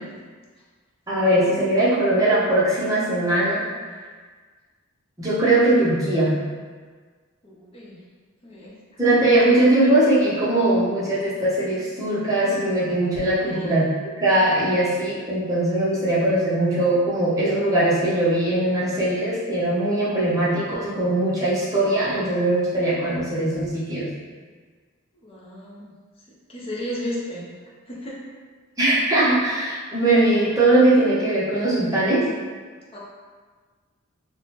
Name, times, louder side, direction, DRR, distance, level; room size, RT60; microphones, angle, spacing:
voice 1, 1.1-3.6 5.2-6.3 9.0-13.9 14.2-24.1 28.8-32.2, right 1 dB, 15° right, -9 dB, 0.8 m, -20 dB
voice 2, 7.4-7.9 8.4-8.7 13.5-13.9 25.2-25.9 26.5-27.5 27.9-28.2 32.9-33.0, equal, 25° left, -5 dB, 0.6 m, -33 dB
3.4 x 2.1 x 2.8 m, 1.5 s
head